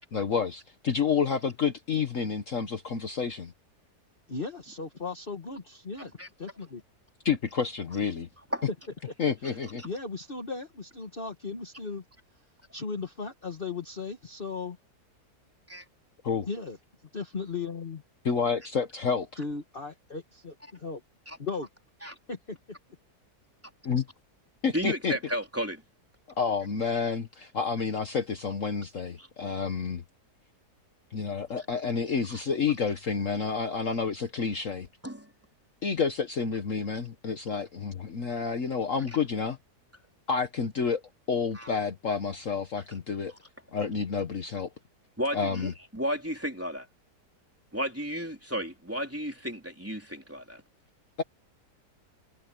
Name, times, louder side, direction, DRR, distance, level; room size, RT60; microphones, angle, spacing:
voice 1, 0.1-3.5 7.2-8.3 9.2-9.8 16.2-16.5 18.2-19.3 23.8-24.1 24.6-25.1 26.4-30.0 31.1-34.9 35.8-39.6 40.3-41.0 41.3-43.3 43.7-44.7 45.3-45.7 51.2-51.3, left 5 dB, 50° left, 1.5 m, -29 dB
voice 2, 4.3-6.1 6.4-6.8 9.4-9.6 9.8-12.0 12.7-14.8 16.5-16.8 17.1-18.0 19.4-21.0 21.4-21.7 22.3-22.6, left 4 dB, 35° left, 1.6 m, -36 dB
voice 3, 24.7-25.8 29.2-29.3 32.3-32.4 35.0-35.3 41.5-41.7 43.3-43.4 45.2-46.9 47.7-50.6, equal, 10° right, 3.6 m, -33 dB
omnidirectional pair, 1.7 m